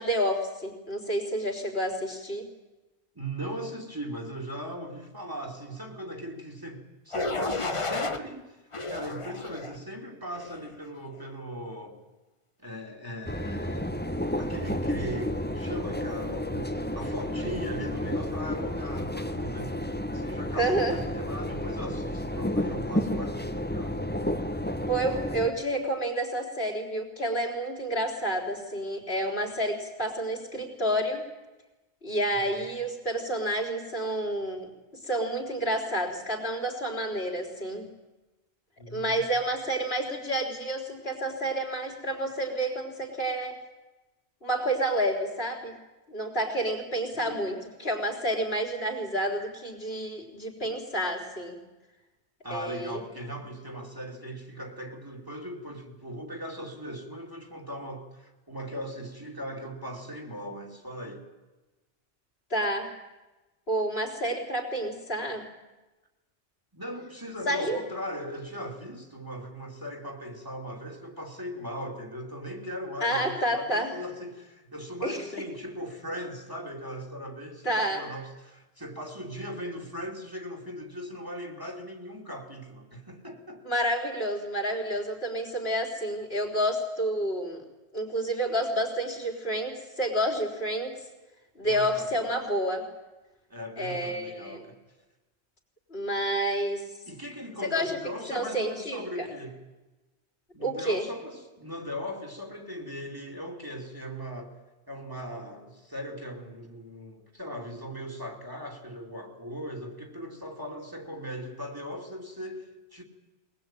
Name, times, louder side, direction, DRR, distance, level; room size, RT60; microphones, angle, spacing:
voice 1, 0.0-2.5 20.6-21.0 24.9-31.2 32.0-34.7 35.0-37.9 38.9-43.6 44.4-45.7 46.1-51.6 52.5-53.0 62.5-62.9 63.7-65.4 67.5-67.8 73.0-73.9 75.0-75.4 77.6-78.1 83.6-87.6 87.9-91.0 91.6-92.9 93.8-94.6 95.9-96.8 97.6-98.0 98.3-99.3 100.6-101.0, right 1 dB, 65° left, 0 dB, 4.1 m, -29 dB
voice 2, 3.1-8.6 8.9-12.0 12.6-14.0 14.4-19.8 20.1-24.0 32.4-32.6 38.8-39.2 47.1-47.6 52.4-61.2 66.7-83.6 91.6-92.3 93.5-94.8 97.1-99.6 100.5-104.5 104.9-113.0, equal, 20° right, 3 dB, 2.9 m, -39 dB
sound 1, 7.1-8.2 8.7-9.8 10.3-10.7, left 3 dB, 30° left, 1.2 m, -32 dB
sound 2, 13.3-25.5, left 1 dB, 10° left, 1.4 m, -31 dB
22.0 x 20.0 x 9.1 m, 1.1 s
omnidirectional pair, 1.1 m